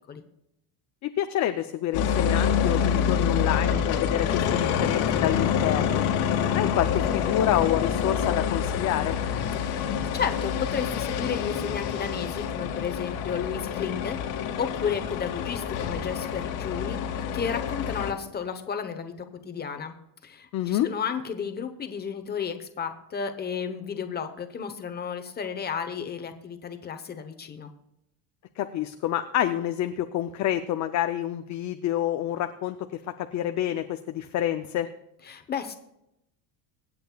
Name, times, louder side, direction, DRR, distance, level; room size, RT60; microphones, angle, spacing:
voice 1, 1.0-6.1 6.5-9.2 20.5-20.9 28.6-34.9, left 12 dB, 40° left, 8 dB, 0.5 m, -28 dB
sound 1, 1.9-18.1, left 7 dB, 85° left, 1.9 m, -27 dB
voice 2, 9.5-19.9 20.2-27.7 35.3-35.7, left 7 dB, 20° left, 7 dB, 0.9 m, -33 dB
24.5 x 8.6 x 2.3 m, 0.83 s
cardioid pair, 170°, 47 cm